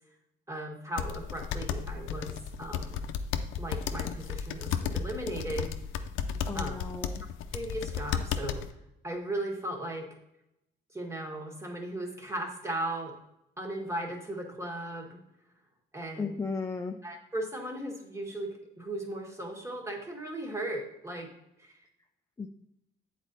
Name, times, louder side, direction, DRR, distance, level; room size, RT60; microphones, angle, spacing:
voice 1, 0.5-3.0 3.6-5.7 6.5-6.8 7.5-8.6 9.0-10.1 10.9-13.1 13.6-15.2 15.9-16.4 17.0-21.3 21.6-21.7, right 1 dB, 15° right, 1 dB, 1.6 m, -37 dB
sound 1, 1.0-8.7, left 7 dB, 85° left, 0.5 m, -34 dB
voice 2, 6.5-7.2 16.2-17.0 22.4-22.5, left 4 dB, 15° left, 4 dB, 0.4 m, -35 dB
8.1 x 4.2 x 4.0 m, 0.86 s
cardioid pair, 90°, 20 cm